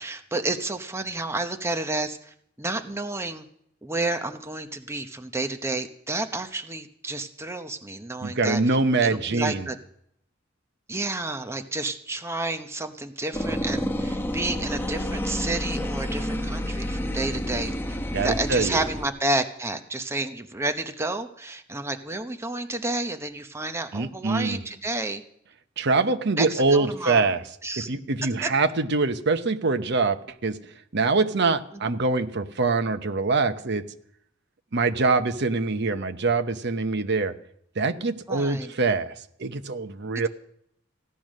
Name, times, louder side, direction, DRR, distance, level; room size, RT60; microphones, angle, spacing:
voice 1, 0.0-3.5 3.8-8.6 9.0-9.8 10.9-18.0 18.2-25.2 26.3-27.3 27.6-27.9 28.4-28.5 31.7-31.8 38.3-38.7, right 2 dB, 15° right, 7 dB, 0.9 m, -30 dB
voice 2, 8.2-9.7 18.1-18.8 23.9-24.6 25.8-27.4 27.8-30.6 30.9-33.8 34.7-37.3 37.8-39.1 39.4-40.3, right 3 dB, 60° right, 9 dB, 0.9 m, -24 dB
sound 1, 13.3-19.1, equal, 10° left, 1.0 m, -29 dB
15.5 x 11.0 x 6.4 m, 0.71 s
head